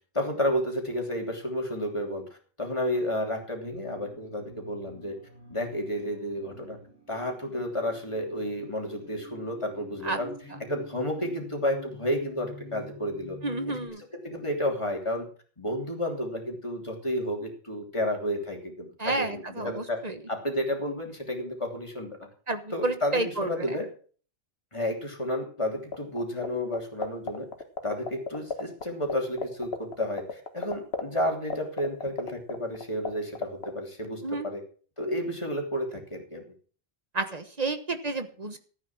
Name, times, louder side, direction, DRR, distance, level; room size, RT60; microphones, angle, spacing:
voice 1, 0.1-2.2 2.6-5.2 5.5-6.8 7.1-10.3 10.6-13.4 14.2-15.3 15.6-22.3 22.7-23.9 24.7-27.5 27.8-34.6 35.0-36.4, left 1 dB, 30° left, 2 dB, 3.2 m, -31 dB
sound 1, 3.6-13.9, left 1 dB, 15° right, 6.7 m, -47 dB
voice 2, 13.4-14.0 19.0-20.2 22.5-23.5 34.2-34.5 37.1-38.6, right 2 dB, 40° right, 9 dB, 1.3 m, -30 dB
sound 2, 25.9-26.5 26.7-28.8 29.1-29.2 29.4-33.1 33.3-33.7, left 5 dB, 80° left, 1.8 m, -30 dB
14.0 x 9.4 x 6.0 m, 0.41 s
omnidirectional pair, 1.0 m